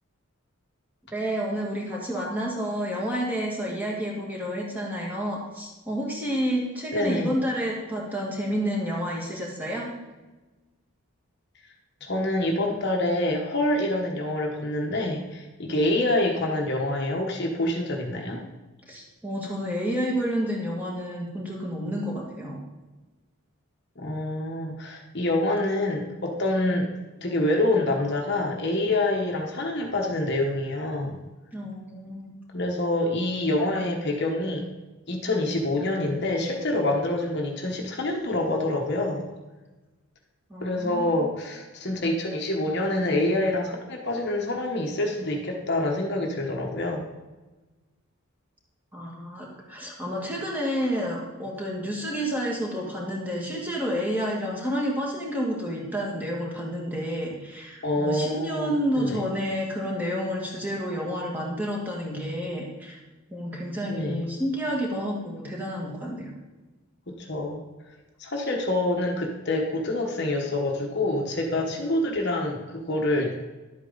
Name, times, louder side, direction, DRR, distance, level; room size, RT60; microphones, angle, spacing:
voice 1, 1.1-9.9 18.9-22.6 31.5-32.3 40.5-41.2 48.9-63.0 63.3-66.3, equal, 10° right, -3 dB, 1.9 m, -30 dB
voice 2, 6.9-7.4 12.0-18.4 24.0-26.9 27.2-31.2 32.5-34.6 35.1-39.3 40.6-47.1 57.8-59.2 63.8-64.3 67.1-67.6 68.2-73.4, left 1 dB, 50° left, 1 dB, 1.1 m, -26 dB
11.5 x 8.2 x 3.9 m, 1.2 s
head